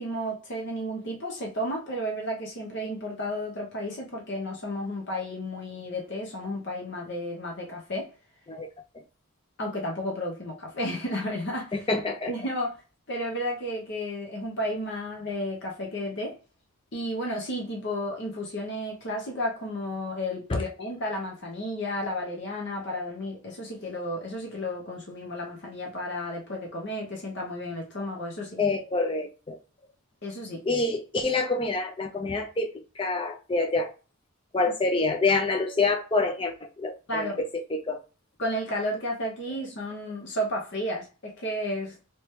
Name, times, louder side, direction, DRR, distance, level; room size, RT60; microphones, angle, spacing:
voice 1, 0.0-8.1 9.6-11.7 12.3-12.8 13.1-16.4 16.9-28.6 30.2-30.6 37.1-37.4 38.4-42.0, equal, 50° left, 0.8 m, -32 dB
voice 2, 11.7-12.3 20.5-20.6 28.6-29.6 30.6-33.9 34.5-38.0, left 3 dB, 25° left, 0.5 m, -27 dB
3.1 x 3.0 x 3.1 m
head